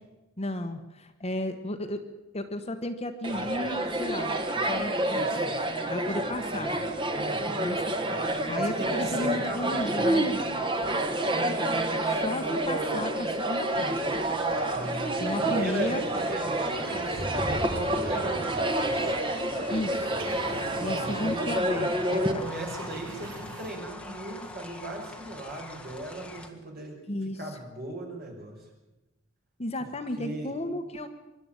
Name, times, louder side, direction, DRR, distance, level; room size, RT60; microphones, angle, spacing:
voice 1, 0.4-2.0 2.3-4.4 4.7-5.5 5.9-6.8 7.6-10.3 12.0-14.2 15.2-16.1 19.7-20.2 20.8-22.5 27.1-27.4 29.6-31.1, left 1 dB, 30° left, 7 dB, 1.2 m, -34 dB
sound 1, 3.2-22.3, right 1 dB, 25° right, 1.5 m, -28 dB
voice 2, 7.1-7.6 8.5-10.0 14.6-19.2 20.8-21.3 21.9-27.0 27.4-28.7 30.2-30.5, right 2 dB, 45° right, 0 dB, 5.6 m, -38 dB
sound 2, 13.7-26.5, left 1 dB, 5° left, 1.7 m, -41 dB
sound 3, 19.8-21.7 22.0-24.0 24.3-24.4, right 2 dB, 80° right, 4.4 m, -46 dB
24.5 x 11.5 x 9.1 m, 1.0 s
head